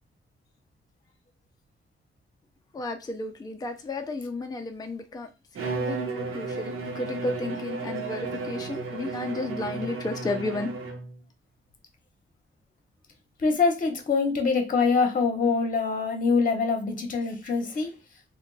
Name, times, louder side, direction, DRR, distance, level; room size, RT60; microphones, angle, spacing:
voice 1, 2.7-5.3 5.6-10.7, left 2 dB, 20° left, 0.4 m, -33 dB
Bowed string instrument, 5.5-11.2, right 4 dB, 85° right, 0.8 m, -33 dB
voice 2, 13.4-18.0, left 4 dB, 40° left, 0.8 m, -24 dB
2.8 x 2.2 x 3.9 m
wide cardioid pair, 150°, 21 cm